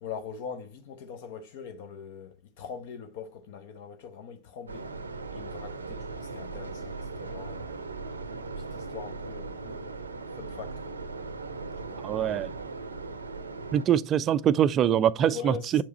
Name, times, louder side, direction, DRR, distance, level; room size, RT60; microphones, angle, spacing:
voice 1, 0.0-4.9 5.3-7.7 8.4-9.9 10.3-11.0 11.8-12.0 15.3-15.8, left 6 dB, 50° left, 0.7 m, -42 dB
sound 1, 4.7-13.9, right 3 dB, 75° right, 0.6 m, -38 dB
voice 2, 12.0-12.5 13.7-15.8, right 10 dB, 30° right, 0.3 m, -24 dB
7.2 x 4.6 x 2.9 m
figure-of-eight pair, 90°, 0 cm